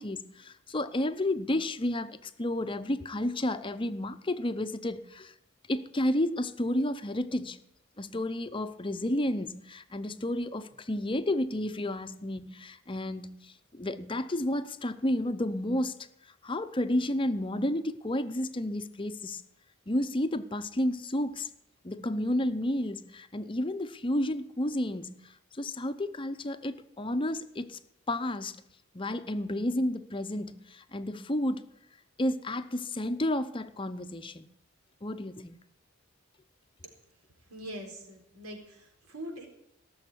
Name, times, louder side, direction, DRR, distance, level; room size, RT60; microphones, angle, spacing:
voice 1, 0.0-5.3 5.7-7.6 8.0-15.9 16.4-19.4 19.9-21.5 21.8-25.2 25.5-27.8 28.1-28.6 28.9-31.6 32.2-34.4 35.0-35.6, left 1 dB, 25° left, 0.7 m, -31 dB
voice 2, 37.5-39.5, equal, 85° right, 4.1 m, -43 dB
18.0 x 7.2 x 9.9 m
head